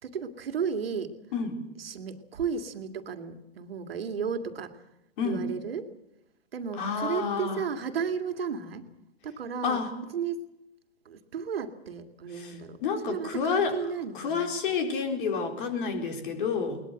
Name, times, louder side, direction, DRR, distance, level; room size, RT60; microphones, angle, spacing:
voice 1, 0.0-1.1 1.8-4.7 5.2-5.9 6.5-8.9 9.2-9.8 10.1-10.4 11.1-14.5, right 6 dB, 65° right, 7 dB, 2.4 m, -34 dB
voice 2, 5.2-5.5 6.8-7.6 9.6-9.9 12.4-12.5 12.8-13.8 14.1-16.8, left 5 dB, 55° left, 6 dB, 4.3 m, -29 dB
22.0 x 20.0 x 7.9 m, 0.90 s
figure-of-eight pair, 110°, 31 cm